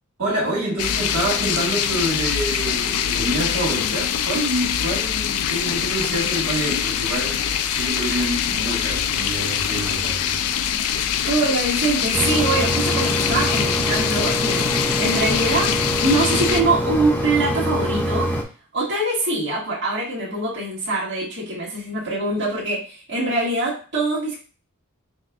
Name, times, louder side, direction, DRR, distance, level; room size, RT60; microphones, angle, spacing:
voice 1, 0.2-10.4, right 1 dB, 80° right, -5 dB, 1.7 m, -27 dB
sound 1, 0.8-16.6, left 9 dB, 75° left, 0.3 m, -24 dB
voice 2, 11.3-15.7 16.0-18.3 18.7-24.4, right 2 dB, 55° right, -7 dB, 1.7 m, -23 dB
Mechanisms, 12.1-18.4, equal, 10° left, 0.5 m, -24 dB
6.0 x 2.5 x 2.3 m, 0.37 s
head